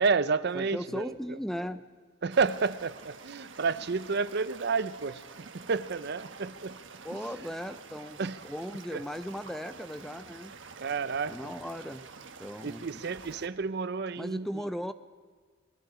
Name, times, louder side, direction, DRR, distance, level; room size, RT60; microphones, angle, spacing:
voice 1, 0.0-1.4 2.2-6.8 8.2-8.4 8.9-9.0 10.8-11.4 12.6-14.5, right 4 dB, 55° right, 0.6 m, -30 dB
voice 2, 0.5-1.9 7.0-10.6 11.2-12.1 12.4-13.0 14.2-14.9, equal, ahead, 0.5 m, -37 dB
sound 1, 2.3-13.5, right 5 dB, 75° right, 1.3 m, -48 dB
27.0 x 21.0 x 5.0 m
head